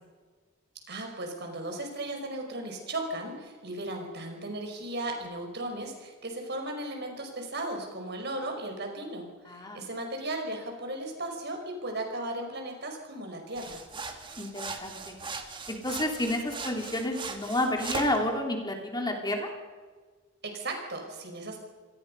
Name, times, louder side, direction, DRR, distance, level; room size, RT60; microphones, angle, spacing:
voice 1, 0.9-13.8 20.4-21.6, right 1 dB, 55° right, 3 dB, 5.4 m, -36 dB
voice 2, 9.5-9.8 14.4-15.2 15.7-19.5, left 1 dB, 20° left, 2 dB, 3.1 m, -30 dB
sound 1, 13.6-18.2, right 4 dB, 25° right, 2.2 m, -39 dB
28.0 x 19.0 x 5.5 m, 1.5 s
head